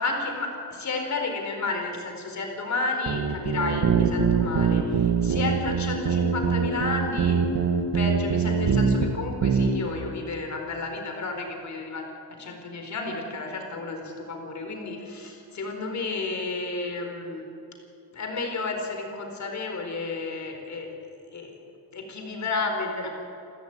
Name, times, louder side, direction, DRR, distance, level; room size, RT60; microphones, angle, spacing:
voice 1, 0.0-12.0 12.4-17.4 18.1-20.9 21.3-21.5 21.9-23.1, left 3 dB, 40° left, 3 dB, 4.4 m, -32 dB
sound 1, 3.1-9.1 9.4-9.7, right 6 dB, 55° right, 2.3 m, -23 dB
29.0 x 13.5 x 9.0 m, 2.8 s
cardioid pair, 175°, 42 cm